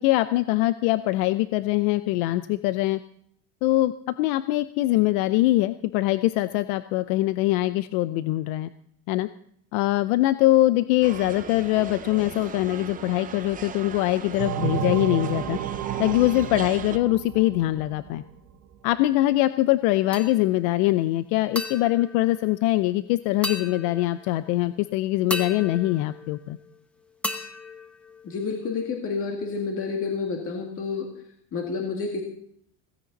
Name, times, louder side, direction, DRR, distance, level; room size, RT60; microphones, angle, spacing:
voice 1, 0.0-3.0 3.6-3.9 4.2-8.7 9.1-9.3 9.7-15.6 16.0-18.2 18.8-26.6, left 16 dB, 90° left, 13 dB, 0.7 m, -23 dB
sound 1, 11.0-17.0, right 8 dB, 20° right, 0.6 m, -38 dB
sound 2, 14.4-18.8, right 10 dB, 45° right, 1.2 m, -31 dB
sound 3, 20.1-20.7 21.5-23.0 23.4-24.4 25.3-26.8 27.2-28.6, left 1 dB, 5° left, 0.9 m, -36 dB
voice 2, 28.2-31.1 31.5-32.2, left 4 dB, 30° left, 2 dB, 2.0 m, -29 dB
16.5 x 16.0 x 4.0 m, 0.67 s
cardioid pair, 165°, 42 cm